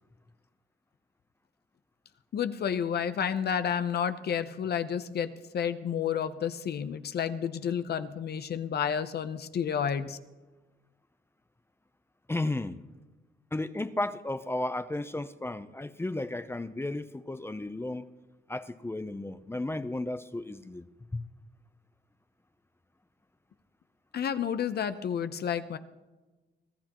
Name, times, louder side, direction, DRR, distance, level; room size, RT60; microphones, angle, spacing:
voice 1, 2.3-10.2 24.1-25.8, left 8 dB, 55° left, 11 dB, 0.8 m, -30 dB
voice 2, 12.3-12.8 13.5-18.1 18.5-20.8 21.1-21.2, left 2 dB, 10° left, 12 dB, 0.6 m, -34 dB
25.0 x 16.0 x 3.0 m, 1.2 s
cardioid pair, 90°, 20 cm